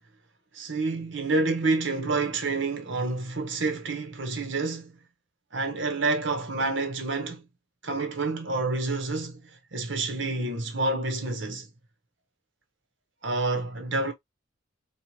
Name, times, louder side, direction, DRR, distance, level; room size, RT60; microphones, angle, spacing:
voice 1, 0.5-5.0 5.5-7.4 7.8-11.7 13.2-14.1, right 3 dB, 65° right, 1.2 m, -28 dB
4.3 x 2.5 x 3.0 m
head